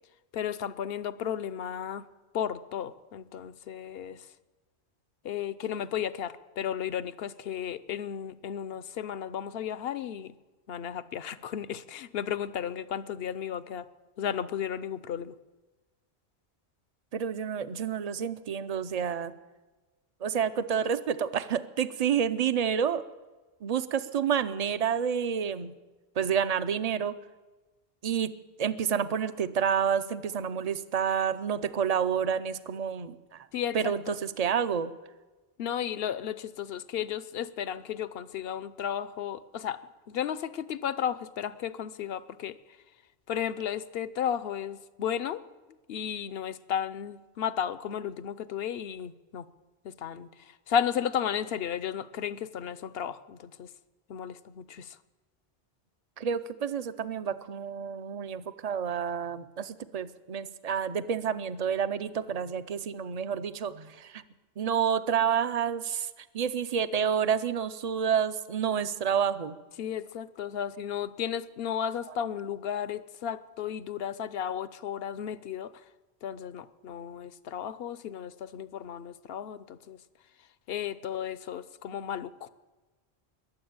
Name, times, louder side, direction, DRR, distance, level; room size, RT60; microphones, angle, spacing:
voice 1, 0.3-2.1 2.3-4.3 5.2-10.3 10.7-13.9 14.2-15.4 33.5-34.1 35.6-39.8 40.1-42.6 43.3-45.4 45.9-49.5 49.8-53.7 54.1-55.0 69.8-75.8 76.2-80.0 80.7-82.5, left 9 dB, 70° left, 15 dB, 0.9 m, -34 dB
voice 2, 17.1-19.3 20.2-23.0 23.6-25.7 26.2-27.1 28.0-28.3 28.6-33.5 33.7-34.9 56.2-64.2 64.6-69.6, right 7 dB, 45° right, 12 dB, 0.7 m, -29 dB
21.5 x 7.5 x 8.7 m, 1.2 s
omnidirectional pair, 1.1 m